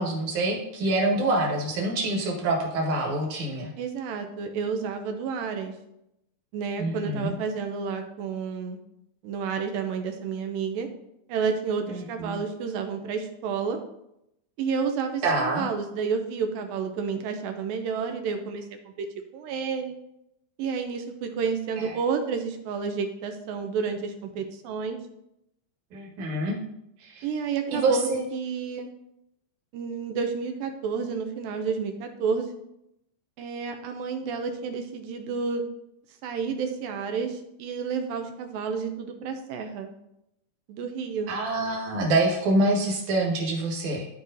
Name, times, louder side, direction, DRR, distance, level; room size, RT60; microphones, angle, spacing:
voice 1, 0.0-3.7 6.8-7.3 11.9-12.4 15.2-15.7 21.8-21.9 25.9-26.6 27.0-27.2 27.7-28.2 41.3-44.1, right 2 dB, 60° right, -1 dB, 2.7 m, -26 dB
voice 2, 3.8-5.7 6.5-8.8 9.2-10.9 11.3-13.8 14.6-19.1 19.3-20.0 20.6-25.0 27.2-28.9 29.7-32.5 33.4-35.7 36.2-39.9 40.7-41.3, right 5 dB, 80° right, 5 dB, 2.3 m, -30 dB
13.5 x 4.7 x 2.7 m, 0.82 s
omnidirectional pair, 4.2 m